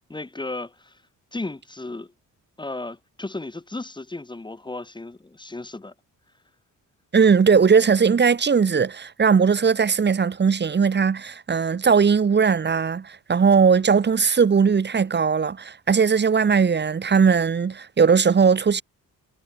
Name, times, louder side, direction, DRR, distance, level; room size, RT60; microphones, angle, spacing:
voice 1, 0.1-1.0 1.3-2.1 2.6-5.9, left 2 dB, 15° left, 4.8 m, -34 dB
voice 2, 7.1-18.8, right 6 dB, 30° right, 2.4 m, -19 dB
wide cardioid pair, 150°, 32 cm